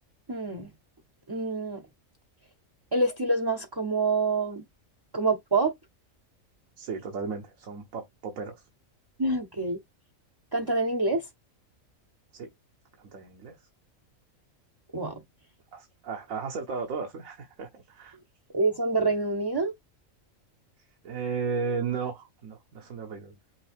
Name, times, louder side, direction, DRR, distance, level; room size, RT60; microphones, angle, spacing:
voice 1, 0.3-0.7 1.3-1.8 2.9-4.6 5.1-5.7 9.2-9.8 10.5-11.2 14.9-15.2 18.5-19.7, right 3 dB, 30° right, 0.5 m, -26 dB
voice 2, 6.8-8.6 12.3-12.5 13.0-13.6 15.7-18.2 21.0-23.3, right 5 dB, 75° right, 1.4 m, -34 dB
5.9 x 2.6 x 3.4 m
omnidirectional pair, 1.4 m